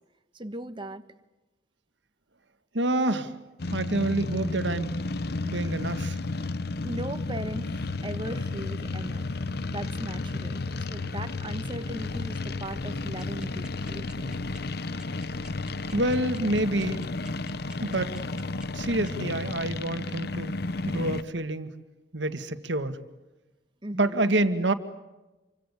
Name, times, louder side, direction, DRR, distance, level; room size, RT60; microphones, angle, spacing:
voice 1, 0.3-1.0 6.8-9.3 9.7-10.6 10.9-14.3 23.8-24.3, right 1 dB, 25° right, 9 dB, 1.5 m, -38 dB
voice 2, 2.7-3.4 3.7-5.0 5.4-6.2 15.9-17.0 17.8-18.1 18.7-20.6 20.8-21.8 22.1-23.0 24.0-24.7, right 1 dB, 75° right, 10 dB, 2.0 m, -27 dB
sound 1, 3.6-21.2, left 3 dB, 60° left, 0.9 m, -32 dB
sound 2, 13.2-19.3, right 3 dB, 5° right, 3.4 m, -50 dB
27.5 x 25.0 x 8.4 m, 1.1 s
head